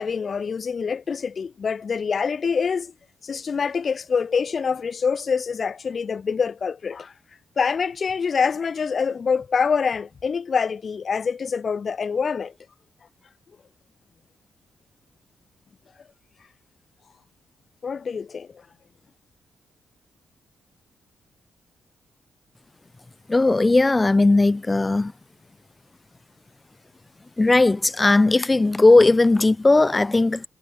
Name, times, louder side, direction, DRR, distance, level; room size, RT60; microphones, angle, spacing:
voice 1, 0.0-2.9 3.2-7.1 7.6-12.5 17.8-18.5, left 6 dB, 50° left, 0.7 m, -25 dB
voice 2, 23.3-25.1 27.4-30.4, left 2 dB, 25° left, 1.1 m, -17 dB
supercardioid pair, 60°, 0 cm